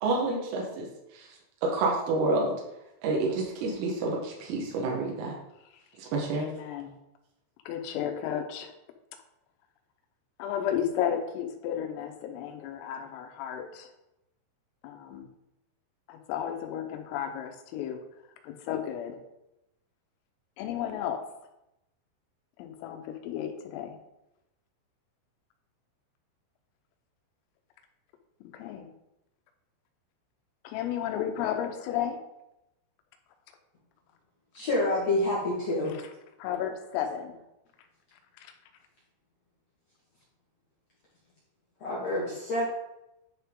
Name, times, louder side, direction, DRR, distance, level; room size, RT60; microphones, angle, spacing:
voice 1, 0.0-0.9 1.1-1.3 1.6-2.6 3.0-5.3 6.0-6.5, right 3 dB, 90° right, -1 dB, 4.0 m, -28 dB
voice 2, 6.4-6.9 7.7-8.7 10.4-13.9 14.8-15.3 16.1-18.0 18.4-19.2 20.6-21.3 22.6-24.0 28.5-28.9 30.7-32.2 35.9-36.0 36.4-37.4 38.4-38.5, left 9 dB, 85° left, 6 dB, 3.6 m, -33 dB
voice 3, 34.5-36.0 41.8-42.7, left 1 dB, 70° left, -6 dB, 1.6 m, -28 dB
10.5 x 5.8 x 3.7 m, 0.88 s
omnidirectional pair, 5.8 m